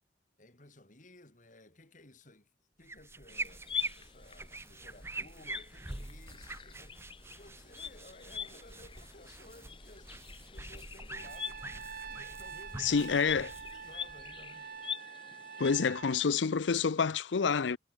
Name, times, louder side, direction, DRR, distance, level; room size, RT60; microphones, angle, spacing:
voice 1, 0.4-2.5 2.8-11.6 12.0-13.1 13.3-14.7, left 2 dB, 45° left, 3.2 m, -57 dB
sound 1, 2.8-14.8, right 2 dB, 15° right, 1.1 m, -45 dB
sound 2, 3.3-15.7, left 8 dB, 30° left, 0.7 m, -44 dB
Trumpet, 11.2-16.2, right 6 dB, 50° right, 0.8 m, -46 dB
voice 2, 12.8-13.5 15.6-17.8, left 5 dB, 90° left, 0.6 m, -28 dB
head